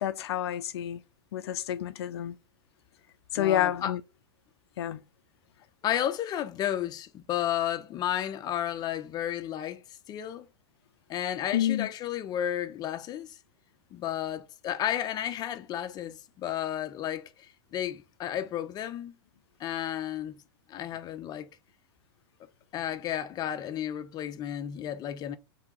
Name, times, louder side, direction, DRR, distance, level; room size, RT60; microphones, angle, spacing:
voice 1, 0.0-1.0 1.3-2.4 3.3-4.0 4.8-5.0 11.5-11.9, left 11 dB, 75° left, 0.4 m, -29 dB
voice 2, 3.4-3.9 5.8-10.4 11.1-13.4 13.9-19.2 19.6-20.4 20.7-21.5 22.7-25.4, left 11 dB, 30° left, 0.6 m, -32 dB
3.5 x 2.8 x 4.3 m
hypercardioid pair, 120°, 14 cm